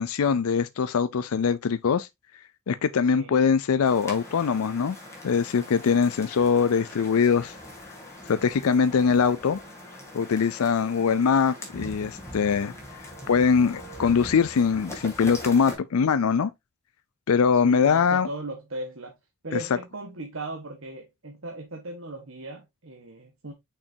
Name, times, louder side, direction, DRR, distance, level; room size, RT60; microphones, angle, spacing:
voice 1, 0.0-2.1 2.7-5.0 5.2-7.6 7.9-8.0 8.2-9.6 10.1-12.7 13.3-16.5 17.3-18.3 19.5-19.6, left 6 dB, 80° left, 0.4 m, -22 dB
sound 1, 3.8-15.7, left 1 dB, 15° left, 2.6 m, -42 dB
voice 2, 17.6-19.2 19.4-23.5, right 2 dB, 65° right, 1.4 m, -37 dB
6.6 x 5.9 x 2.7 m
head